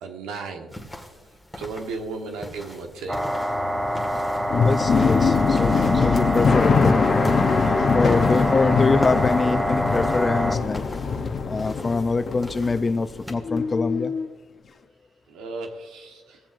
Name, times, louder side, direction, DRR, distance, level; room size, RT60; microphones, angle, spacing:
voice 1, 0.0-0.8 1.5-3.3 8.2-8.8 15.3-16.4, right 3 dB, 90° right, 3 dB, 1.3 m, -35 dB
sound 1, 0.7-13.3, equal, ahead, 1.9 m, -40 dB
sound 2, 3.1-13.2 13.4-14.3, left 5 dB, 50° left, 0.9 m, -23 dB
sound 3, 3.1-10.6, equal, 15° right, 0.9 m, -26 dB
voice 2, 4.6-7.5 7.9-10.8 11.5-14.1, left 3 dB, 30° left, 11 dB, 0.6 m, -24 dB
17.0 x 7.4 x 2.6 m, 1.2 s
cardioid pair, 90°, 0 cm